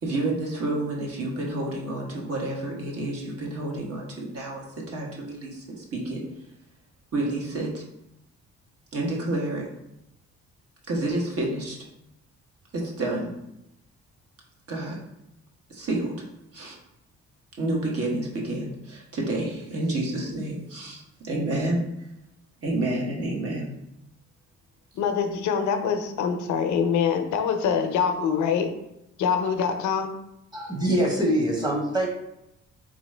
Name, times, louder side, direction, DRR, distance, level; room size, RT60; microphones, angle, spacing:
voice 1, 0.0-6.2 7.1-7.8 8.9-9.6 10.9-11.8 12.7-13.3 14.7-15.0 15.7-16.1 16.5-16.8 17.6-21.8 22.6-23.7, right 2 dB, 50° right, -2 dB, 1.1 m, -29 dB
voice 2, 25.0-28.7 29.2-30.1, left 7 dB, 70° left, 7 dB, 0.5 m, -24 dB
voice 3, 30.5-32.1, right 1 dB, 15° right, -2 dB, 1.1 m, -24 dB
3.6 x 2.9 x 3.2 m, 0.84 s
cardioid pair, 90°, 30 cm